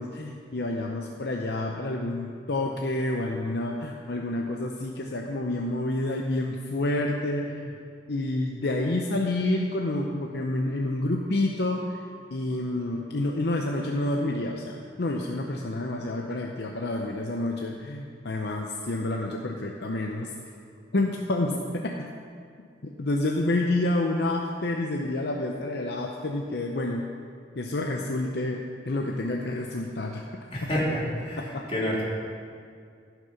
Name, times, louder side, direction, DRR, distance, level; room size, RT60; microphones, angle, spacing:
voice 1, 0.0-7.7 8.1-12.0 12.3-20.3 20.9-22.1 23.0-27.1 27.5-30.3 30.6-30.7 31.4-31.7, left 2 dB, 65° left, 1 dB, 0.7 m, -29 dB
voice 2, 30.5-31.4 31.7-32.0, equal, 30° left, -6 dB, 2.9 m, -27 dB
15.0 x 6.0 x 5.8 m, 2.2 s
head